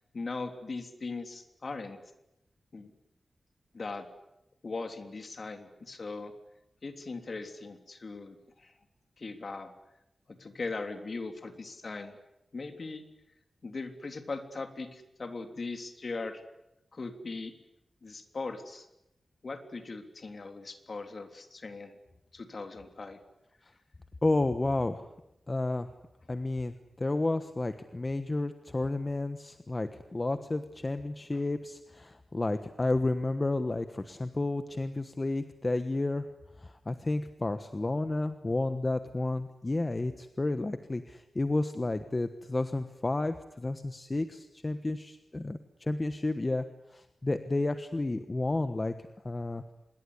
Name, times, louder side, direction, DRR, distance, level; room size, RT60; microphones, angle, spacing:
voice 1, 0.1-2.0 2.7-2.9 3.7-4.1 4.6-6.3 6.8-8.7 9.2-9.7 10.3-12.2 12.5-13.0 13.6-16.4 16.9-17.5 18.0-18.9 19.4-22.0 22.3-23.2 31.3-31.4, left 3 dB, 45° left, 7 dB, 3.2 m, -39 dB
voice 2, 24.2-25.1 25.5-25.9 26.3-36.2 36.6-46.6 46.9-48.9 49.2-49.6, left 2 dB, 25° left, 9 dB, 1.2 m, -31 dB
26.5 x 22.0 x 9.8 m, 0.86 s
wide cardioid pair, 130°, 0 cm